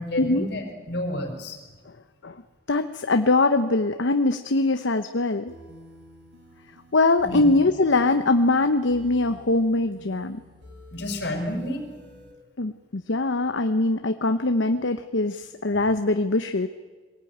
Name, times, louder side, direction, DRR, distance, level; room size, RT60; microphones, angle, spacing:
voice 1, 0.0-1.6 7.2-7.4 10.9-11.8, left 1 dB, 60° left, 3 dB, 4.8 m, -30 dB
voice 2, 2.7-5.5 6.9-10.4 12.6-16.7, left 2 dB, 80° left, 8 dB, 0.9 m, -22 dB
sound 1, 5.5-12.3, equal, 65° right, 5.4 m, -49 dB
23.0 x 18.0 x 9.3 m, 1.4 s
head